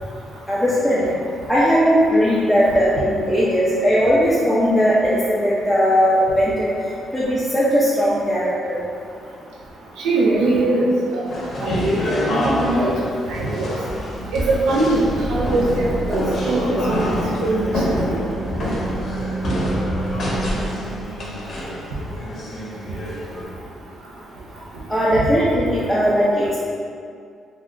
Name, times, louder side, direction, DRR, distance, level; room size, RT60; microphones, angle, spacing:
voice 1, 0.5-1.0 1.5-6.7 7.1-8.8 24.9-26.6, equal, ahead, -8 dB, 0.4 m, -18 dB
voice 2, 10.0-11.3 11.6-12.0 12.3-13.0 13.3-13.7 14.3-15.0 15.3-17.1 17.4-17.6, right 2 dB, 90° right, -5 dB, 0.4 m, -21 dB
sound 1, 11.3-23.4, equal, 55° left, 0.6 m, -27 dB
sound 2, 14.3-21.7, right 2 dB, 50° right, 0.7 m, -28 dB
2.4 x 2.1 x 3.5 m, 2.3 s
cardioid pair, 90°, 0 cm